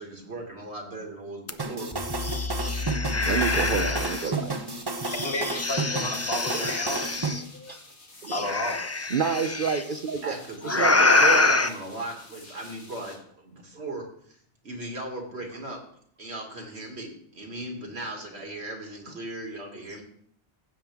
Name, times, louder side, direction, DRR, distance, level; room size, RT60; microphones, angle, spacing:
voice 1, 0.0-1.9 6.5-6.7 10.2-14.3 14.6-15.8 16.2-20.0, right 2 dB, 75° right, 1 dB, 2.5 m, -37 dB
sound 1, 1.5-1.6 1.9-4.3 5.0-7.4 8.3-9.8 10.6-11.7, left 3 dB, 20° left, 0.4 m, -25 dB
sound 2, 1.6-7.3, right 3 dB, 25° right, 0.8 m, -31 dB
sound 3, 3.2-13.2, left 2 dB, 90° left, 2.3 m, -49 dB
voice 2, 3.3-4.6 7.7-7.8 8.2-8.5 9.1-10.4 10.6-11.6, right 6 dB, 55° right, 7 dB, 0.8 m, -29 dB
voice 3, 5.2-7.0 8.3-8.8, left 2 dB, 65° left, 3 dB, 1.8 m, -31 dB
15.5 x 7.4 x 3.6 m, 0.62 s
omnidirectional pair, 1.1 m